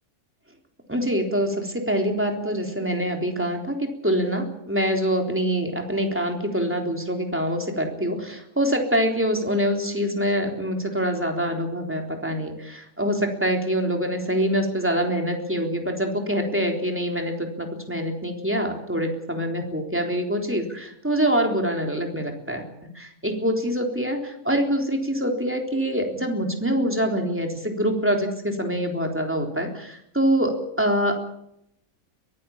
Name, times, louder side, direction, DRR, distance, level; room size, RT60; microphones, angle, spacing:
voice 1, 0.9-22.7 22.9-31.2, equal, 10° right, 3 dB, 3.7 m, -25 dB
22.5 x 15.0 x 8.8 m, 0.78 s
omnidirectional pair, 1.5 m